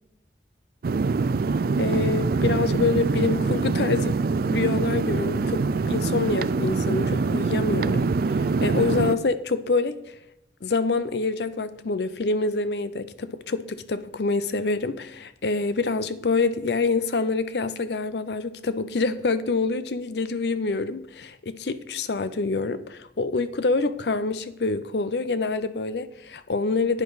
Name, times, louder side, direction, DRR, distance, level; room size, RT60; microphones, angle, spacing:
sound 1, 0.8-9.2, right 4 dB, 55° right, 0.4 m, -24 dB
voice 1, 1.8-10.2 10.6-27.0, left 3 dB, 65° left, 0.6 m, -26 dB
10.5 x 9.0 x 4.0 m
head